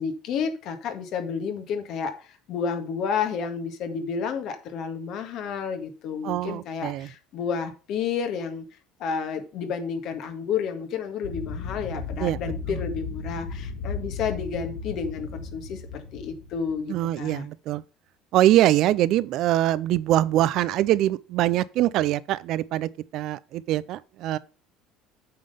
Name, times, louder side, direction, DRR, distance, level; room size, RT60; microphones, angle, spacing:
voice 1, 0.0-8.6 9.0-17.5, left 6 dB, 55° left, 1.7 m, -31 dB
voice 2, 6.2-7.1 12.2-12.4 12.7-12.8 16.9-17.8 18.3-24.4, right 14 dB, 60° right, 0.4 m, -23 dB
sound 1, 11.2-17.0, left 4 dB, 85° left, 2.5 m, -35 dB
8.5 x 3.8 x 6.7 m
cardioid pair, 120°, 0 cm